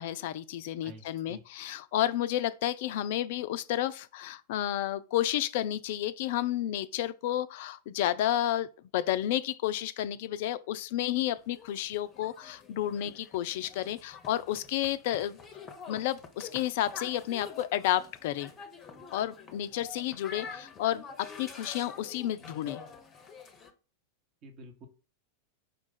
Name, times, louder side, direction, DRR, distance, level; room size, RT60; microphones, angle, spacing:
voice 1, 0.0-8.7 8.9-15.4 15.9-18.5 19.1-22.8, left 12 dB, 50° left, 0.3 m, -31 dB
voice 2, 0.8-1.4 24.4-24.9, right 2 dB, 35° right, 1.0 m, -49 dB
sound 1, 11.4-23.7, left 5 dB, 25° left, 0.7 m, -47 dB
5.1 x 2.4 x 3.9 m
figure-of-eight pair, 90°, 0 cm